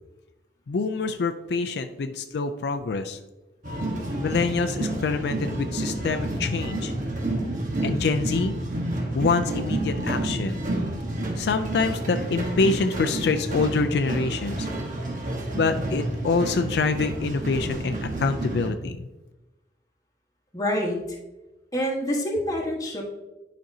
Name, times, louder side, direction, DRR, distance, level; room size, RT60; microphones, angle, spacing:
voice 1, 0.7-3.2 4.2-6.9 7.8-8.5 9.1-10.6 11.4-14.7 15.5-19.1, left 4 dB, 70° left, 7 dB, 0.4 m, -26 dB
sound 1, 3.6-18.7, right 1 dB, 45° right, 1.2 m, -29 dB
voice 2, 20.5-21.2 21.7-23.0, equal, 20° left, -2 dB, 1.4 m, -27 dB
10.5 x 5.1 x 2.7 m, 1.1 s
head